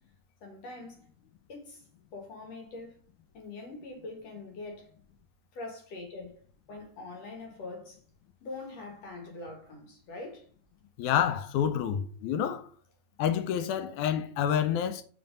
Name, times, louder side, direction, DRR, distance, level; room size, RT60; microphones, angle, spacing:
voice 1, 0.4-1.1 1.5-1.8 2.1-3.0 3.3-4.9 5.5-6.4 6.7-8.0 8.4-10.5, left 2 dB, 60° left, 2.8 m, -43 dB
voice 2, 11.0-12.7 13.2-15.0, left 9 dB, 80° left, 2.1 m, -28 dB
5.3 x 4.5 x 5.2 m
omnidirectional pair, 3.4 m